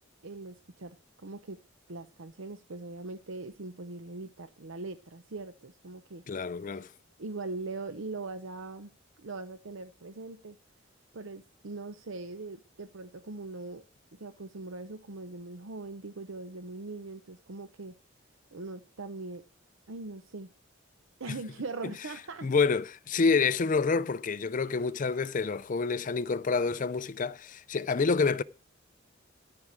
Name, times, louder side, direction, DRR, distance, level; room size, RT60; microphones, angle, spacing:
voice 1, 0.2-1.6 1.9-6.2 6.7-6.8 7.2-8.9 9.2-10.6 11.1-13.8 14.1-17.9 18.5-19.4 19.9-20.5 21.2-22.5, right 3 dB, 80° right, 0.8 m, -41 dB
voice 2, 6.3-6.9 21.3-21.4 22.4-28.4, left 4 dB, 40° left, 0.5 m, -28 dB
13.5 x 4.8 x 8.8 m
head